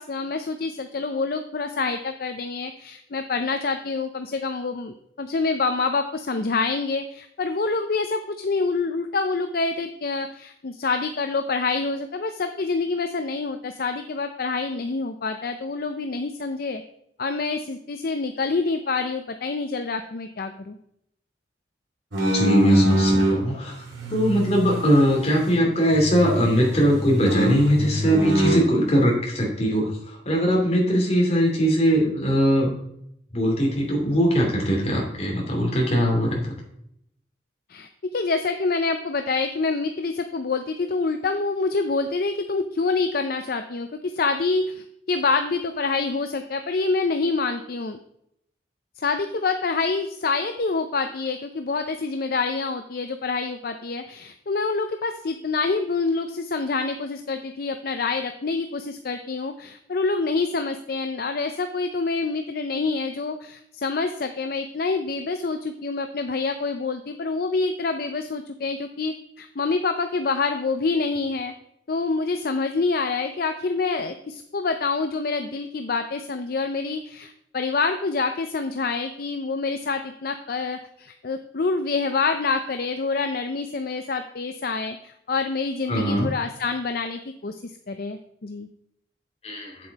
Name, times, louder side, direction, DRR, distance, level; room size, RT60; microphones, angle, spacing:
voice 1, 0.0-16.8 17.2-20.8 37.7-48.0 49.0-71.5 71.9-88.7, left 4 dB, 55° left, 7 dB, 0.5 m, -26 dB
sound 1, 22.1-23.4 23.9-25.6 25.9-28.6, equal, 90° right, 2.6 m, -24 dB
voice 2, 22.3-23.8 24.1-32.7 33.3-36.4 85.9-86.3 89.4-89.7, equal, 35° left, -1 dB, 2.7 m, -21 dB
7.9 x 7.6 x 4.0 m, 0.75 s
head